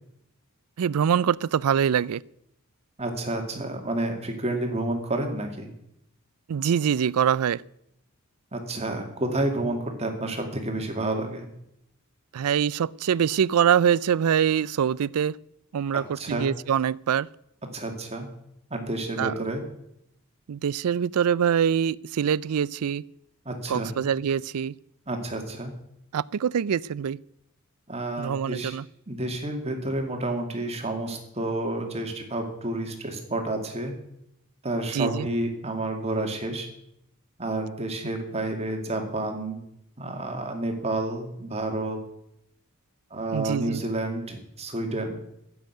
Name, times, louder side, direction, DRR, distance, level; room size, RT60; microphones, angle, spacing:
voice 1, 0.8-2.2 6.5-7.6 12.3-15.4 15.7-17.3 19.2-19.3 20.5-23.0 23.7-24.8 26.1-27.2 28.2-28.8 34.9-35.3 43.3-43.8, right 8 dB, 90° right, 0.4 m, -24 dB
voice 2, 3.0-5.7 8.5-11.5 16.2-16.5 17.7-18.3 18.7-19.6 23.5-24.0 25.1-25.7 27.9-28.8 29.1-33.9 34.6-36.7 37.4-39.6 40.0-42.0 43.1-45.2, right 2 dB, 30° right, 2.2 m, -30 dB
12.5 x 8.0 x 9.2 m
head